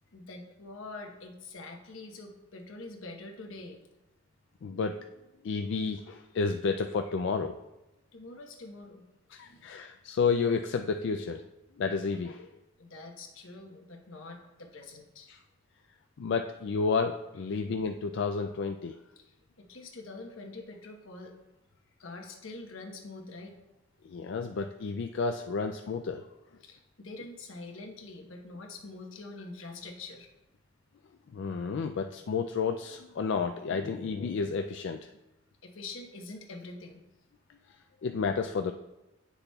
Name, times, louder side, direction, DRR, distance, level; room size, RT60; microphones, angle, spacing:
voice 1, 0.1-3.8 8.1-9.1 9.4-9.7 12.8-15.3 19.2-21.3 22.0-23.6 24.8-24.9 26.6-30.3 35.6-37.0, left 3 dB, 85° left, 3 dB, 1.1 m, -45 dB
voice 2, 4.6-5.0 5.4-7.6 9.3-11.4 11.8-12.5 15.3-15.4 16.2-19.0 24.0-26.2 31.3-35.1 38.0-38.7, left 5 dB, 65° left, 5 dB, 0.3 m, -31 dB
9.6 x 6.8 x 2.3 m, 0.96 s
head